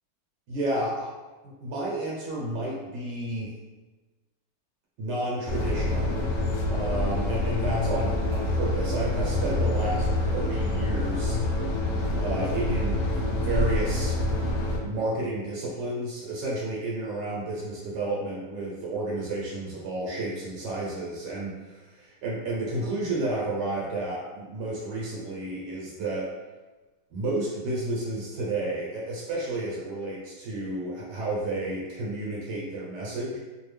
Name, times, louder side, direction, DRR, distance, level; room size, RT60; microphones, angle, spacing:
voice 1, 0.5-1.1 1.4-3.5 5.0-6.1 6.7-10.1 10.3-11.4 12.1-14.2 14.8-26.2 27.1-33.4, right 2 dB, 70° right, -5 dB, 1.3 m, -31 dB
sound 1, 5.5-14.8, left 1 dB, 75° left, 0.9 m, -26 dB
3.3 x 2.2 x 3.3 m, 1.2 s
omnidirectional pair, 2.1 m